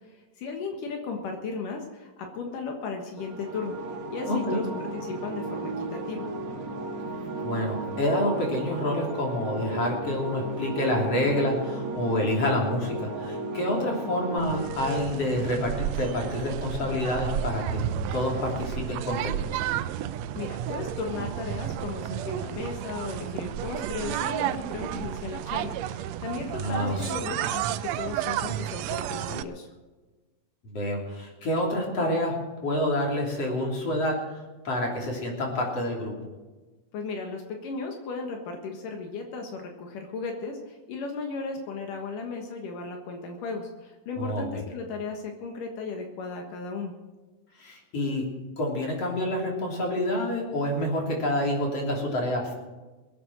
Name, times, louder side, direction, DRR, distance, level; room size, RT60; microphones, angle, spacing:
voice 1, 0.0-3.8 4.1-4.7 5.0-6.3 20.3-29.7 36.9-46.9, left 4 dB, 80° left, 3 dB, 3.1 m, -35 dB
sound 1, 3.2-15.1, right 3 dB, 50° right, 1.0 m, -35 dB
voice 2, 4.3-4.6 7.4-17.8 18.1-19.6 26.6-27.1 30.6-34.2 34.6-36.1 44.2-44.4 47.6-48.2 48.6-52.5, left 1 dB, 50° left, -1 dB, 4.2 m, -28 dB
sound 2, 14.4-29.4, right 11 dB, 90° right, 1.5 m, -32 dB
21.5 x 8.7 x 6.2 m, 1.2 s
omnidirectional pair, 3.8 m